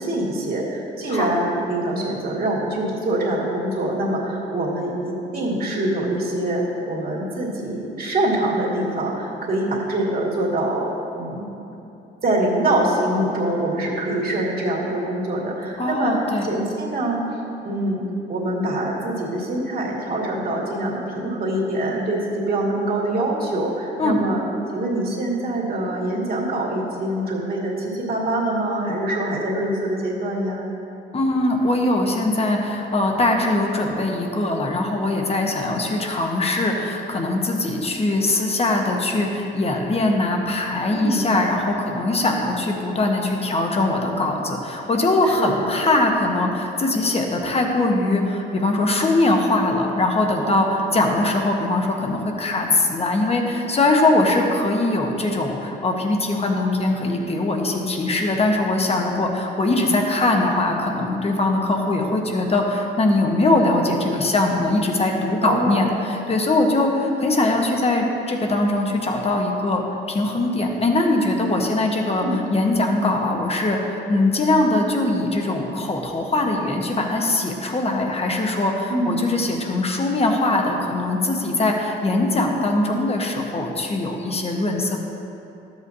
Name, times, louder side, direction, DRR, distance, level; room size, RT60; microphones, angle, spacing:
voice 1, 0.0-10.9 11.1-11.6 12.2-16.2 16.4-17.2 17.6-24.4 24.7-30.7 40.9-41.2 45.3-45.6 50.4-50.7 65.4-65.9 72.1-72.4 78.9-79.3, right 1 dB, 50° right, -3 dB, 2.1 m, -24 dB
voice 2, 15.8-16.5 24.0-24.2 31.1-85.0, left 2 dB, 30° left, 2 dB, 1.2 m, -21 dB
12.5 x 8.1 x 2.8 m, 2.8 s
cardioid pair, 90°, 20 cm